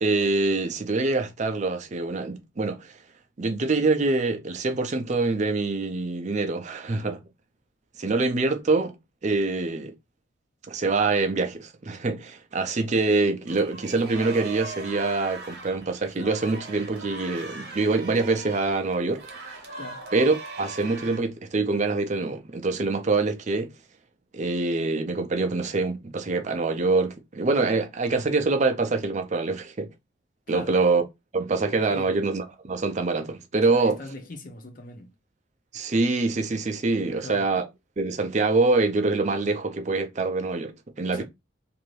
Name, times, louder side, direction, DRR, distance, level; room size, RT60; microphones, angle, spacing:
voice 1, 0.0-2.9 3.4-7.2 8.0-9.0 9.2-9.9 10.7-19.2 20.1-23.7 24.3-29.9 30.5-31.0 31.3-34.0 35.7-37.6 38.0-41.2, right 3 dB, 35° right, 0.4 m, -25 dB
sound 1, 13.5-21.2, right 3 dB, 50° right, 1.0 m, -40 dB
voice 2, 30.5-30.8 31.9-32.1 33.7-35.1 37.0-37.5 41.1-41.2, left 2 dB, 45° left, 0.6 m, -40 dB
2.7 x 2.5 x 3.1 m
head